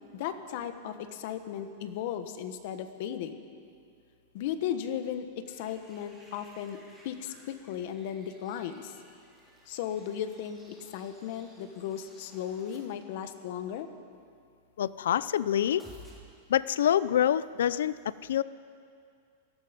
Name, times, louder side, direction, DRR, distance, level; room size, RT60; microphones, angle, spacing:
voice 1, 0.1-3.5 4.3-8.9 9.7-10.6 10.9-13.9, left 9 dB, 50° left, 9 dB, 1.5 m, -36 dB
sound 1, 5.5-12.8 15.8-16.1, equal, ahead, 4.2 m, -57 dB
voice 2, 14.8-15.8 16.5-18.4, left 10 dB, 85° left, 17 dB, 0.6 m, -26 dB
28.5 x 17.5 x 5.3 m, 2.3 s
supercardioid pair, 160°, 0 cm